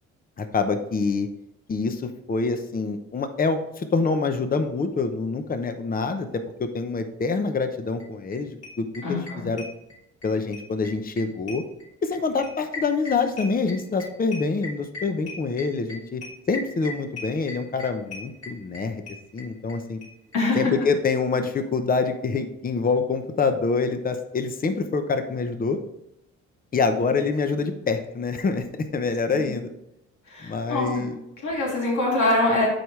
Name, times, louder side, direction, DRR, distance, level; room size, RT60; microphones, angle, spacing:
voice 1, 0.4-1.3 1.7-9.6 10.2-11.6 12.0-16.2 16.5-19.0 19.3-20.0 20.5-25.8 26.7-29.7 30.4-31.2, left 4 dB, 30° left, 8 dB, 0.8 m, -26 dB
sound 1, 8.0-8.1 8.3-8.4 8.6-10.3 10.5-19.8 20.0-20.1 20.3-20.4 20.6-20.7, left 3 dB, 55° left, 3.3 m, -38 dB
voice 2, 9.0-9.5 20.3-20.7 29.3-29.5 30.3-32.7, left 2 dB, 75° left, -3 dB, 3.2 m, -24 dB
11.5 x 4.8 x 3.2 m, 0.84 s
cardioid pair, 90°, 30 cm